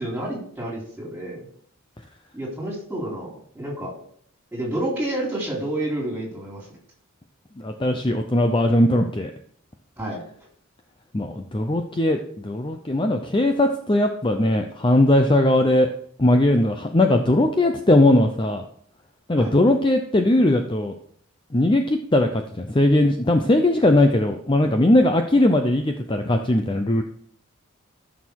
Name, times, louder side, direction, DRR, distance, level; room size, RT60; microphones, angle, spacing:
voice 1, 0.0-1.5 2.3-3.9 4.5-6.7 10.0-10.2 19.3-19.5, right 1 dB, 5° right, -2 dB, 3.5 m, -29 dB
voice 2, 7.6-9.3 11.1-15.9 16.2-18.6 19.3-20.9 21.5-27.0, left 1 dB, 20° left, 5 dB, 0.6 m, -19 dB
13.0 x 6.3 x 4.6 m, 0.62 s
head